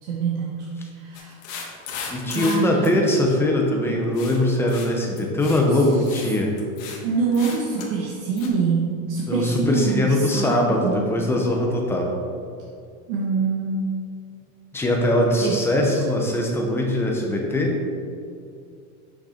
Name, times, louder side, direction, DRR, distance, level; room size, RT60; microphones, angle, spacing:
voice 1, 0.0-0.7 0.9-1.4 2.3-3.0 5.7-6.1 7.0-11.1 13.1-13.9 15.4-15.6, right 5 dB, 90° right, -3 dB, 1.4 m, -25 dB
sound 1, 1.1-2.6 2.8-2.9 4.1-4.4 4.7-4.9 5.2-5.6 5.9-6.3 6.6-7.0 7.3-7.9 8.4-8.5, left 6 dB, 75° left, 2.0 m, -36 dB
voice 2, 2.1-6.5 9.3-12.1 14.7-17.8, left 1 dB, 5° left, 0 dB, 0.7 m, -21 dB
8.9 x 6.3 x 4.3 m, 2.4 s
supercardioid pair, 175°, 40 cm